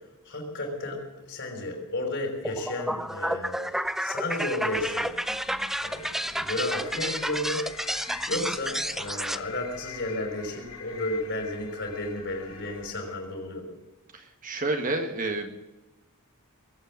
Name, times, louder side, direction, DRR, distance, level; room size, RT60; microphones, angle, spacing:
voice 1, 0.3-1.0 1.3-5.1 5.8-7.7 8.2-13.7, left 1 dB, 55° left, 2 dB, 5.7 m, -33 dB
sound 1, 2.4-9.4, equal, ahead, 0.5 m, -31 dB
sound 2, 4.8-13.3, left 6 dB, 75° left, 3.2 m, -46 dB
voice 2, 5.3-5.7 8.1-8.2 14.1-15.5, right 2 dB, 40° right, 5 dB, 1.7 m, -31 dB
21.5 x 8.9 x 7.5 m, 1.1 s
head